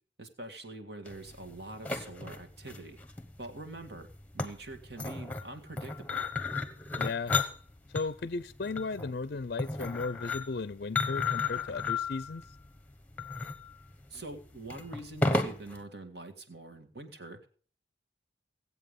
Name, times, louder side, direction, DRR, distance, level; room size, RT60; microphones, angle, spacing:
voice 1, 0.2-3.0 3.4-4.1 4.3-6.3 14.1-17.5, right 2 dB, 60° right, 7 dB, 2.0 m, -44 dB
sound 1, 1.1-15.8, left 3 dB, 10° left, 1.1 m, -34 dB
voice 2, 7.0-7.3 7.9-12.4, left 4 dB, 55° left, 16 dB, 0.5 m, -35 dB
17.5 x 8.2 x 5.3 m, 0.43 s
head